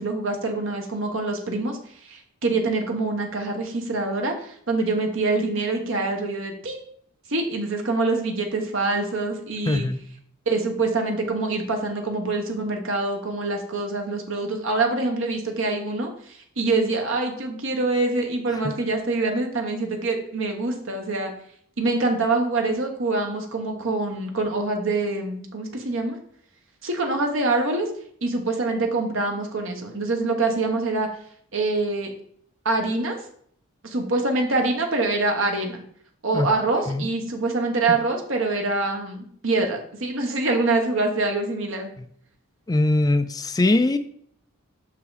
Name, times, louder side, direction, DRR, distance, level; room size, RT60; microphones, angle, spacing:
voice 1, 0.0-1.8 2.0-6.8 7.3-9.9 10.5-21.3 21.8-26.2 26.8-27.9 28.2-31.1 31.5-32.1 32.6-33.2 33.8-35.8 36.2-41.9, right 3 dB, 60° right, 1.1 m, -25 dB
voice 2, 9.7-10.0 36.3-36.5 36.9-37.1 42.7-44.0, left 2 dB, 15° left, 0.3 m, -21 dB
5.9 x 5.6 x 4.0 m
head